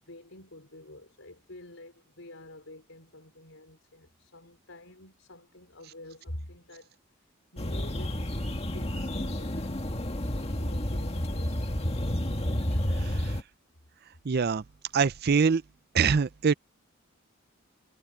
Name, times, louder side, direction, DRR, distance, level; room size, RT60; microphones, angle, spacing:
voice 1, 0.0-7.0 7.3-9.8 10.4-11.6, left 1 dB, 80° left, 4.4 m, -48 dB
sound 1, 7.6-13.4, left 1 dB, 30° left, 1.9 m, -30 dB
voice 2, 14.3-14.6 14.9-15.6 15.9-16.5, right 5 dB, 50° right, 0.5 m, -23 dB
head